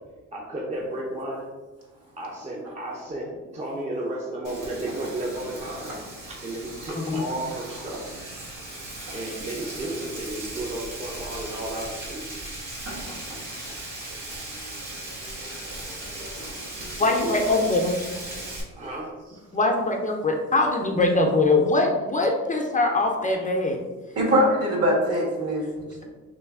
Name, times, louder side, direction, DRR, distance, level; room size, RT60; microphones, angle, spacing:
voice 1, 0.3-1.5 2.2-5.9 6.2-8.0 9.1-12.4 17.0-17.5 18.8-19.1, right 1 dB, 20° right, -2 dB, 0.6 m, -33 dB
Frying (food), 4.4-18.6, right 1 dB, 80° right, 1.5 m, -37 dB
voice 2, 17.0-18.0 19.5-23.8, left 2 dB, 25° left, 1 dB, 0.5 m, -22 dB
voice 3, 24.1-26.0, equal, 55° right, -1 dB, 1.4 m, -22 dB
3.1 x 3.1 x 3.5 m, 1.2 s
cardioid pair, 90°, 30 cm